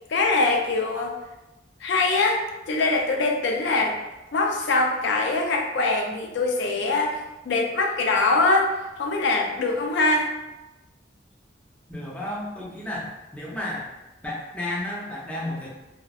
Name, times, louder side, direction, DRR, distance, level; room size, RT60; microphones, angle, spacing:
voice 1, 0.1-1.2 1.8-4.0 4.3-10.3, left 3 dB, 75° left, 2 dB, 0.4 m, -23 dB
voice 2, 11.9-13.9 14.2-15.7, left 1 dB, 10° left, -5 dB, 0.5 m, -32 dB
2.9 x 2.4 x 2.3 m, 1.0 s
head